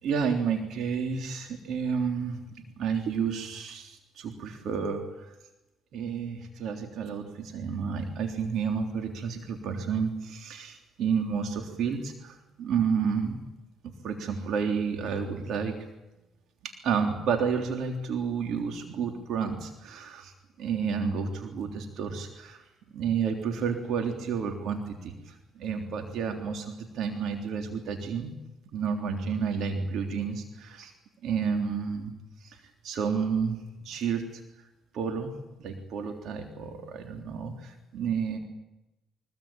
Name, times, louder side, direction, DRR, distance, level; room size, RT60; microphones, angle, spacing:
voice 1, 0.0-2.4 2.8-5.3 5.9-13.4 13.8-15.7 16.6-20.3 20.6-22.6 22.9-28.3 28.7-30.9 31.2-32.1 32.4-32.6 32.8-34.4 34.9-35.3 35.6-38.4, right 6 dB, 70° right, 5 dB, 3.4 m, -31 dB
24.0 x 20.5 x 8.9 m, 0.99 s
supercardioid pair, 70°, 0 cm